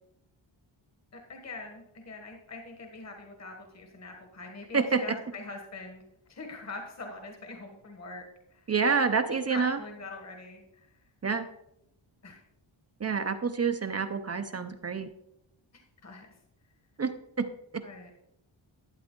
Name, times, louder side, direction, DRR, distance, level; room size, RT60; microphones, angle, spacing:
voice 1, 1.1-6.0 6.3-8.2 8.5-8.7 9.5-11.0 12.2-12.4 16.0-16.3 17.8-18.1, left 3 dB, 35° left, 3 dB, 1.3 m, -43 dB
voice 2, 8.7-9.8 11.2-11.5 13.0-15.1 17.0-17.1 17.4-17.5, right 5 dB, 30° right, 8 dB, 0.5 m, -27 dB
12.5 x 8.8 x 3.7 m, 0.81 s
wide cardioid pair, 170°, 48 cm